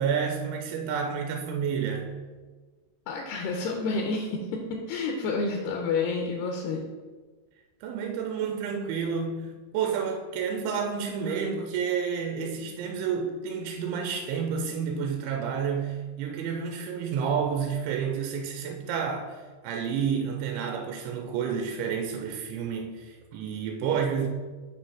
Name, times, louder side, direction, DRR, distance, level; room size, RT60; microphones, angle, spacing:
voice 1, 0.0-2.2 7.8-24.3, right 6 dB, 90° right, 3.0 m, -30 dB
voice 2, 3.1-6.8, left 4 dB, 80° left, 2.4 m, -29 dB
8.2 x 3.0 x 5.8 m
omnidirectional pair, 5.1 m